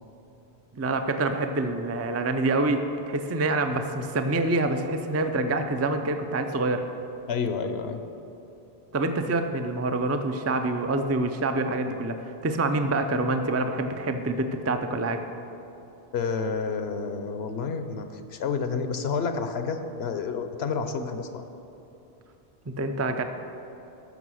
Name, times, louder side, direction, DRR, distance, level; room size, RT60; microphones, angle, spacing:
voice 1, 0.7-6.8 8.9-15.2 22.7-23.2, right 2 dB, 20° right, 6 dB, 0.4 m, -26 dB
voice 2, 7.3-8.0 16.1-21.4, left 5 dB, 70° left, 8 dB, 1.0 m, -29 dB
13.5 x 6.1 x 6.3 m, 2.9 s
omnidirectional pair, 1.1 m